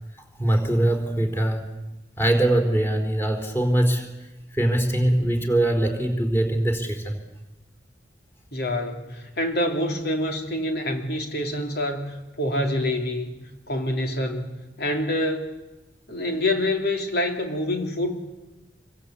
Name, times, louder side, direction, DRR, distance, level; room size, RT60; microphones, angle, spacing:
voice 1, 0.4-1.7 2.2-4.1 4.5-7.2, right 1 dB, 15° left, 4 dB, 4.0 m, -22 dB
voice 2, 8.5-13.4 13.7-15.6 16.1-18.2, left 1 dB, 65° left, 3 dB, 3.2 m, -26 dB
27.0 x 24.5 x 8.4 m, 1.0 s
head